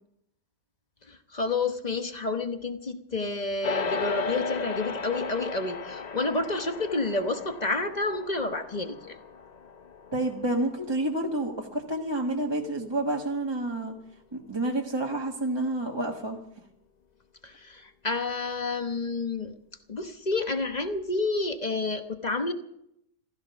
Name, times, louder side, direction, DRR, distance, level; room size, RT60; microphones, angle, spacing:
voice 1, 1.1-9.2 17.4-19.5 19.9-22.5, left 3 dB, 30° left, 7 dB, 1.0 m, -30 dB
sound 1, 3.6-13.1, left 4 dB, 50° left, 0.5 m, -36 dB
voice 2, 10.1-13.9 14.3-16.4, right 1 dB, 15° right, -1 dB, 1.4 m, -29 dB
15.5 x 14.5 x 5.9 m, 0.77 s
omnidirectional pair, 1.7 m